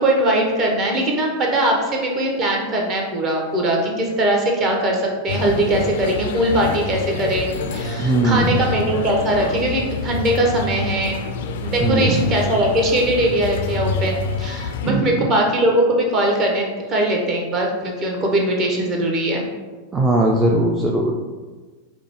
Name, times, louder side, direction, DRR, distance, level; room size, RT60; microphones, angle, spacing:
voice 1, 0.0-11.2 11.6-19.5, right 1 dB, 30° right, 0 dB, 0.8 m, -20 dB
sound 1, 5.3-14.9, left 4 dB, 55° left, 0.3 m, -27 dB
voice 2, 8.0-8.6 11.8-12.2 14.9-15.3 19.9-21.1, right 2 dB, 15° right, -1 dB, 0.4 m, -19 dB
4.9 x 2.0 x 3.4 m, 1.3 s
figure-of-eight pair, 90°, 0 cm